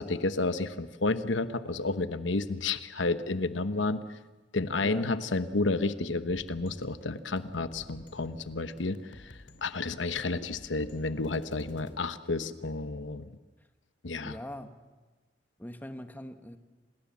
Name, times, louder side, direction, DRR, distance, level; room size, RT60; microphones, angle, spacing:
voice 1, 0.0-4.0 4.5-9.0 9.2-9.3 9.6-13.3 14.0-14.3, left 3 dB, 90° left, 12 dB, 1.0 m, -31 dB
sound 1, 6.3-11.9, left 1 dB, 70° left, 2.8 m, -52 dB
voice 2, 14.2-14.8 15.6-16.6, left 1 dB, 10° left, 8 dB, 1.2 m, -41 dB
28.0 x 20.0 x 7.3 m, 1.2 s
head